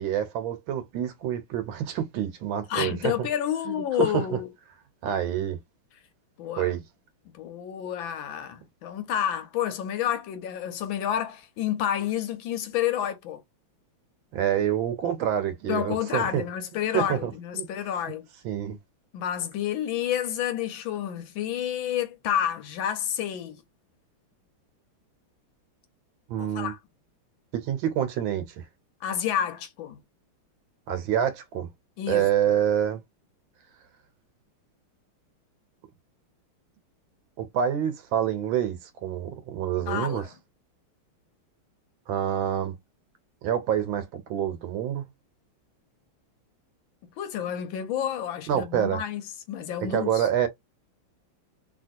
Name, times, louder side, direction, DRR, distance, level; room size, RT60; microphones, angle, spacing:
voice 1, 0.0-3.3 3.6-4.2 5.0-5.6 6.6-6.8 14.3-16.4 16.9-17.7 18.4-18.8 26.3-26.7 27.5-28.6 30.9-31.7 32.1-33.0 37.4-40.3 42.1-42.8 43.4-45.0 48.5-49.0 49.9-50.5, right 10 dB, 70° right, 1.5 m, -27 dB
voice 2, 2.7-4.5 6.4-6.7 7.3-13.4 15.7-18.3 19.1-23.6 26.4-26.8 29.0-30.0 32.0-32.3 39.9-40.3 47.2-49.2 49.5-50.3, left 10 dB, 75° left, 1.3 m, -29 dB
3.1 x 2.9 x 2.6 m
omnidirectional pair, 2.3 m